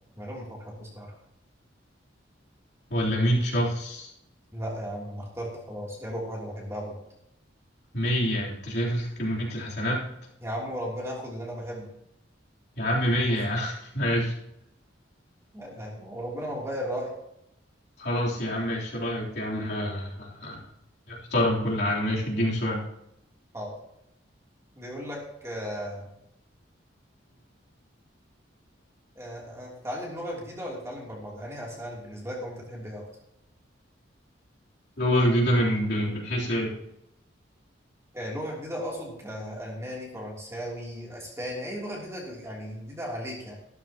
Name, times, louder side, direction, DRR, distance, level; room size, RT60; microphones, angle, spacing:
voice 1, 0.1-1.1 4.5-7.0 10.4-11.9 13.3-13.4 15.5-17.1 23.5-23.7 24.7-26.1 29.1-33.1 38.1-43.5, equal, 15° right, -3 dB, 3.1 m, -36 dB
voice 2, 2.9-4.1 7.9-10.1 12.8-14.3 18.0-20.7 21.1-22.8 35.0-36.7, equal, 60° left, -5 dB, 3.6 m, -26 dB
14.0 x 13.0 x 3.0 m, 0.80 s
head